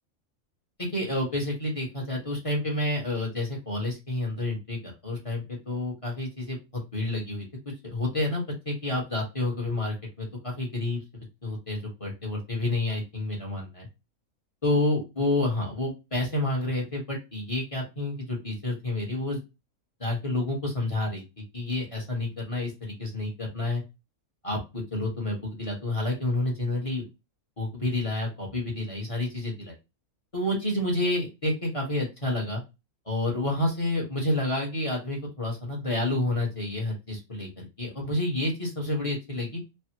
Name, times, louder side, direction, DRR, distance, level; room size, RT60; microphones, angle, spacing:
voice 1, 0.8-13.9 14.6-19.4 20.0-21.2 21.5-23.8 24.4-27.0 27.6-29.8 30.3-32.6 33.1-39.6, left 1 dB, 25° left, -1 dB, 1.0 m, -29 dB
3.3 x 2.1 x 2.8 m, 0.25 s
omnidirectional pair, 1.5 m